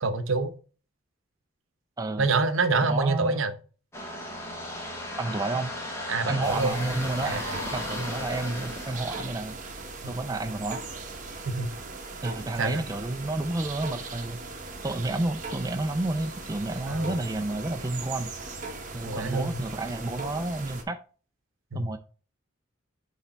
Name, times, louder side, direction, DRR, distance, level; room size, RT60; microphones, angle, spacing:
voice 1, 0.0-0.5 2.2-3.5 6.1-6.7 7.2-7.6 10.0-10.1 11.4-11.7 12.6-12.8 16.9-17.2 19.0-19.6 21.7-21.9, right 3 dB, 70° right, 0.8 m, -26 dB
voice 2, 2.9-3.4 5.2-5.7 6.3-7.4 7.7-9.6 10.1-10.8 12.2-14.4 14.8-18.3 18.9-21.0 21.7-22.0, right 2 dB, 15° right, 0.4 m, -30 dB
sound 1, 3.9-9.2, left 1 dB, 10° left, 1.2 m, -36 dB
sound 2, 6.4-20.8, right 3 dB, 35° right, 1.0 m, -39 dB
8.4 x 3.3 x 4.0 m
head